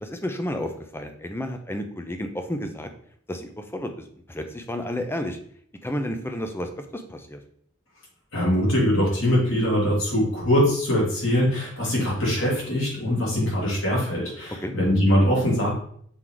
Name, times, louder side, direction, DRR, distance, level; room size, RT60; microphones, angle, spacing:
voice 1, 0.0-2.9 3.3-5.4 5.8-7.4 14.6-14.7, left 1 dB, 10° left, 6 dB, 0.6 m, -31 dB
voice 2, 8.3-15.7, equal, 65° left, -4 dB, 2.9 m, -22 dB
6.1 x 4.7 x 3.9 m, 0.63 s
head